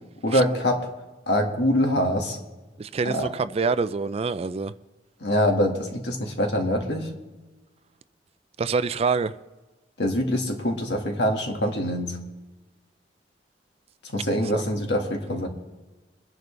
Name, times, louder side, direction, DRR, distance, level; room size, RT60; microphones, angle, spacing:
voice 1, 0.2-0.9 1.3-2.4 3.1-3.3 5.2-7.1 10.0-12.2 14.0-15.5, equal, 70° left, 2.0 m, -24 dB
voice 2, 2.8-4.7 8.6-9.3 14.5-14.6, right 4 dB, 35° right, 0.4 m, -26 dB
23.0 x 10.5 x 3.4 m
head